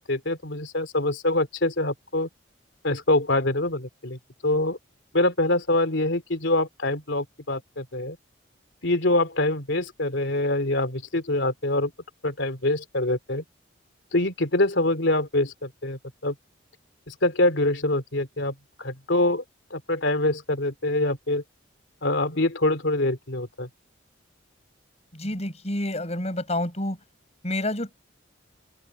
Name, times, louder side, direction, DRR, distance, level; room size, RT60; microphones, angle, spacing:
voice 1, 0.0-2.3 2.8-4.8 5.1-8.2 8.8-11.9 12.2-13.4 14.1-16.3 17.1-19.4 19.7-21.4 22.0-23.7, left 2 dB, 70° left, 2.9 m, -25 dB
voice 2, 25.1-27.0 27.4-27.9, left 1 dB, 35° left, 7.7 m, -28 dB
open air
head